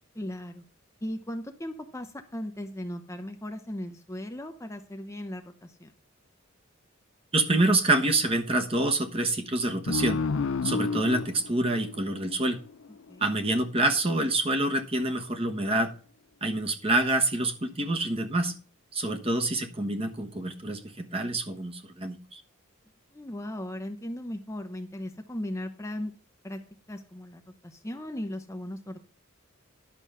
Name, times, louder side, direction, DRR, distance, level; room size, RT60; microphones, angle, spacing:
voice 1, 0.2-0.6 1.0-5.9 13.1-13.3 23.1-26.1 26.4-26.6 26.9-29.0, left 1 dB, 15° left, 5 dB, 0.7 m, -37 dB
voice 2, 7.3-10.2 10.6-12.6 13.2-15.9 16.4-18.5 18.9-22.4, right 2 dB, 25° right, 5 dB, 1.2 m, -27 dB
sound 1, 9.9-13.0, left 4 dB, 75° left, 0.5 m, -31 dB
11.0 x 6.2 x 5.5 m, 0.40 s
head